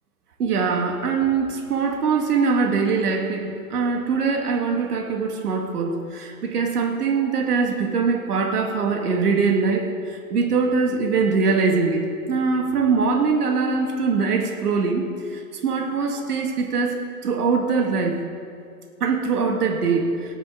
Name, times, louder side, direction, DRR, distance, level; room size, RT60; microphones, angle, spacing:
voice 1, 0.4-9.9 10.3-12.0 12.3-15.0 15.3-18.2 19.0-20.1, right 5 dB, 85° right, 3 dB, 2.1 m, -22 dB
28.5 x 9.6 x 3.8 m, 2.4 s
hypercardioid pair, 160°, 45 cm